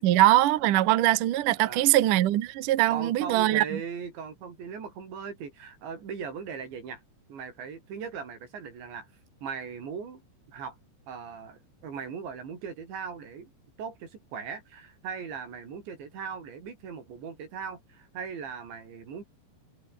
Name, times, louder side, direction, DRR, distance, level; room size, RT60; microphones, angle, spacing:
voice 1, 0.0-3.8, right 15 dB, 65° right, 2.3 m, -22 dB
voice 2, 2.9-7.0 7.3-9.1 9.4-10.2 10.5-10.8 11.1-13.5 13.8-19.2, right 6 dB, 85° right, 7.5 m, -39 dB
omnidirectional pair, 5.0 m